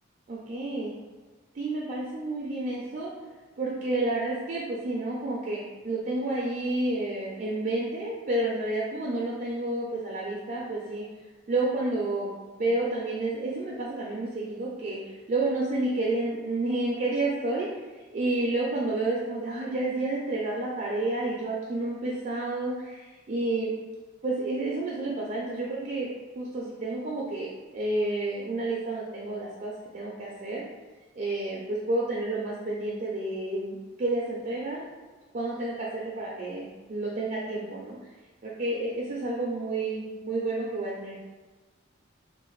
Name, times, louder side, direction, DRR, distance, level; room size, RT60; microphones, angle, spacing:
voice 1, 0.3-0.9 1.5-3.1 3.6-11.1 11.5-15.0 15.3-17.7 18.1-23.7 24.2-26.1 26.4-30.6 31.1-34.9 35.3-38.0 38.4-41.2, right 2 dB, 40° right, -4 dB, 0.3 m, -30 dB
3.1 x 2.1 x 3.0 m, 1.2 s
head